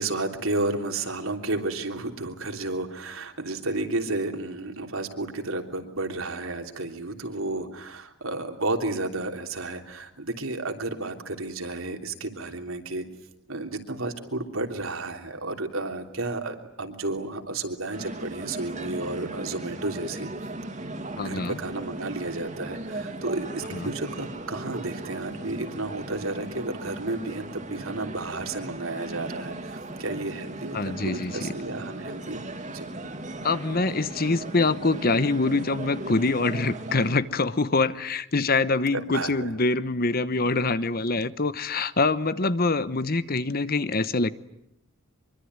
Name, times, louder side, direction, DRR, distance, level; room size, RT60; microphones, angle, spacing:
voice 1, 0.0-13.0 13.5-20.3 21.2-32.4 32.7-32.9 38.9-39.5, right 2 dB, 75° right, 4 dB, 3.3 m, -32 dB
sound 1, 17.9-37.2, right 2 dB, 35° right, 2.7 m, -37 dB
voice 2, 21.2-21.6 23.7-23.9 30.7-31.5 33.4-44.3, left 3 dB, 45° left, 14 dB, 1.0 m, -25 dB
25.0 x 24.0 x 9.6 m, 0.79 s
head